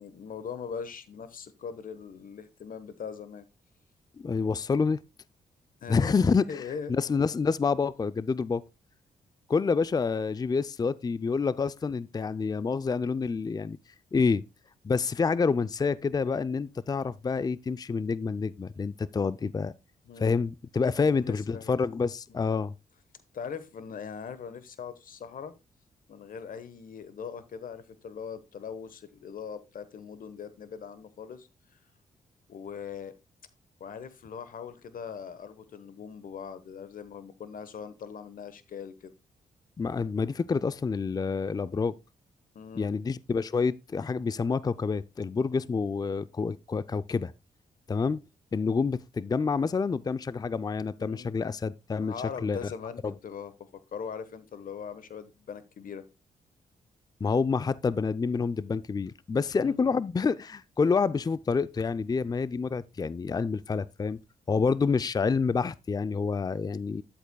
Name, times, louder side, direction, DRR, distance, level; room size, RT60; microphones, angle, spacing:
voice 1, 0.0-3.5 5.8-6.0 6.5-6.9 20.1-20.4 21.0-21.8 22.3-22.5 23.3-25.5 26.1-31.5 32.5-33.1 33.8-39.1 42.5-42.9 51.0-51.3 52.0-53.5 53.9-56.0 59.5-59.8, left 6 dB, 60° left, 1.1 m, -41 dB
voice 2, 4.2-5.0 5.9-6.6 6.9-8.6 9.5-13.8 14.1-14.4 14.8-19.7 20.2-22.7 39.8-41.9 42.8-47.3 47.9-48.2 48.5-52.1 52.4-52.6 53.0-53.1 57.2-64.2 64.5-67.0, left 5 dB, 25° left, 0.4 m, -28 dB
11.5 x 8.0 x 2.2 m
supercardioid pair, 55°, 16 cm